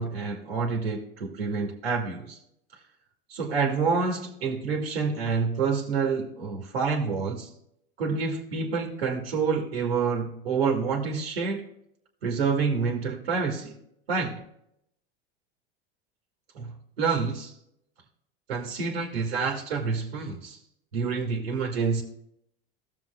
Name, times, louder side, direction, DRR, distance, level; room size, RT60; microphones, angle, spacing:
voice 1, 0.0-2.4 3.3-7.5 8.0-11.6 12.2-13.8 14.1-14.4 16.5-16.7 17.0-17.5 18.5-20.6 20.9-22.0, right 5 dB, 90° right, 1 dB, 1.7 m, -28 dB
15.0 x 7.3 x 2.3 m, 0.75 s
hypercardioid pair, 90°, 30 cm